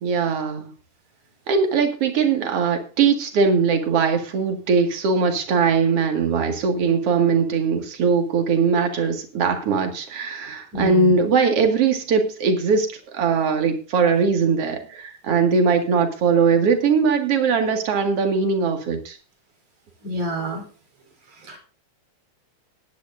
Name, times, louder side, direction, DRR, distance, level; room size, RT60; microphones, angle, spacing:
voice 1, 0.0-0.7 1.5-12.9 13.1-19.2, right 5 dB, 55° right, 5 dB, 2.8 m, -20 dB
voice 2, 10.7-11.1 20.0-20.6 21.4-21.6, right 1 dB, 75° right, 1 dB, 5.4 m, -28 dB
19.5 x 10.0 x 2.6 m, 0.36 s
omnidirectional pair, 3.4 m